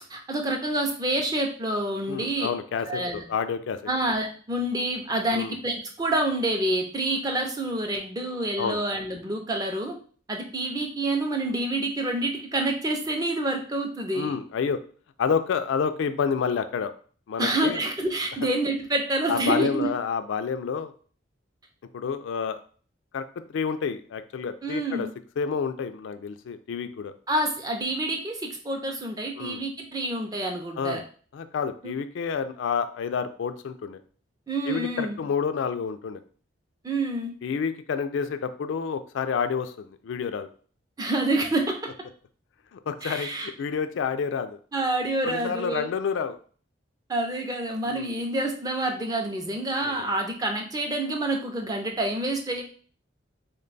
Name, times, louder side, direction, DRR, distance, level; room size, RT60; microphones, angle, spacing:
voice 1, 0.1-2.5 2.9-3.2 3.9-10.0 10.3-14.3 17.4-19.9 24.6-25.1 27.3-31.0 31.8-31.9 34.5-35.2 36.8-37.3 41.0-41.9 43.0-43.5 44.7-45.9 47.1-52.6, right 1 dB, 20° right, 3 dB, 0.4 m, -27 dB
voice 2, 2.1-3.8 5.3-5.5 8.6-8.8 14.1-14.8 15.2-16.9 17.3-17.8 19.3-20.9 21.9-22.6 23.1-23.2 23.5-25.1 25.4-27.1 29.4-29.6 30.8-31.0 31.3-34.0 34.7-36.2 37.4-40.5 42.7-44.6 45.2-46.4 47.9-48.1 49.8-50.1, left 6 dB, 70° left, 10 dB, 0.3 m, -29 dB
3.3 x 2.2 x 3.9 m, 0.43 s
head